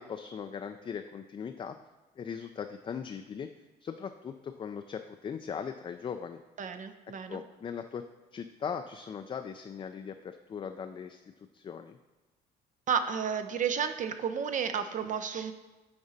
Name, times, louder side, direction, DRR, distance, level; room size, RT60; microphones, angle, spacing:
voice 1, 0.0-1.8 2.2-3.5 3.8-6.4 7.3-8.0 8.3-12.0, left 7 dB, 30° left, 7 dB, 0.3 m, -39 dB
voice 2, 6.6-7.4 12.9-15.5, right 7 dB, 45° right, 9 dB, 0.5 m, -32 dB
8.7 x 3.9 x 4.0 m, 1.2 s
cardioid pair, 90°, 18 cm